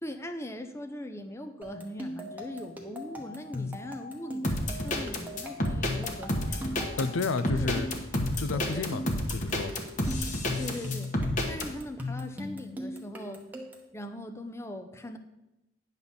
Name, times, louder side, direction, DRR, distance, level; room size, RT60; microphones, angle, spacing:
voice 1, 0.0-6.8 7.5-7.8 8.7-9.0 10.6-13.4 13.9-15.2, left 1 dB, 15° left, 8 dB, 0.5 m, -40 dB
sound 1, 1.6-13.9, left 2 dB, 10° right, 1.0 m, -39 dB
sound 2, 4.4-11.7, left 1 dB, 40° left, 1.1 m, -30 dB
voice 2, 7.0-7.9 8.4-9.0 9.3-9.7, left 4 dB, 90° left, 13 dB, 0.5 m, -30 dB
9.7 x 4.1 x 7.1 m, 0.95 s
head